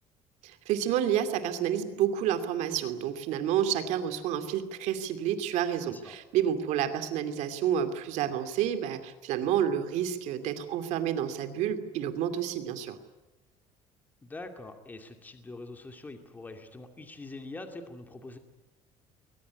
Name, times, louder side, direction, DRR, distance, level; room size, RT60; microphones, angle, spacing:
voice 1, 0.4-13.0, right 9 dB, 75° right, 9 dB, 2.6 m, -29 dB
voice 2, 14.2-18.4, left 2 dB, 15° left, 5 dB, 2.4 m, -44 dB
22.0 x 19.5 x 9.8 m, 1.1 s
cardioid pair, 155°, 12 cm